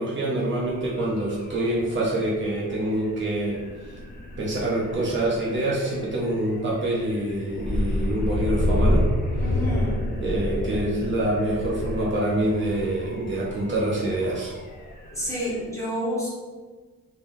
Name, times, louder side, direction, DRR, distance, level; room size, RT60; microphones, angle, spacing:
voice 1, 0.0-3.6 4.4-9.1 10.2-14.5, right 1 dB, 40° right, -5 dB, 0.7 m, -26 dB
sound 1, 0.6-15.6, left 1 dB, 30° left, 0.5 m, -30 dB
voice 2, 9.4-10.0 15.1-16.3, equal, 10° left, -8 dB, 1.0 m, -29 dB
3.6 x 3.3 x 2.6 m, 1.4 s
wide cardioid pair, 155°, 31 cm